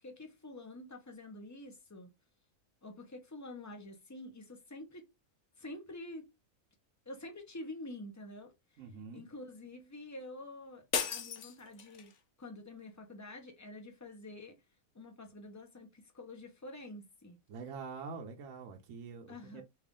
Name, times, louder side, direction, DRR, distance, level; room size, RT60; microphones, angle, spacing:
voice 1, 0.0-2.1 2.8-5.1 5.6-6.3 7.1-8.8 9.1-12.1 12.4-14.5 14.9-17.4 19.3-19.6, left 2 dB, 25° left, 0.4 m, -48 dB
voice 2, 8.8-9.2 17.5-19.6, right 5 dB, 65° right, 1.0 m, -45 dB
sound 1, 10.9-12.2, left 7 dB, 60° left, 1.0 m, -36 dB
3.3 x 2.5 x 3.6 m
omnidirectional pair, 1.5 m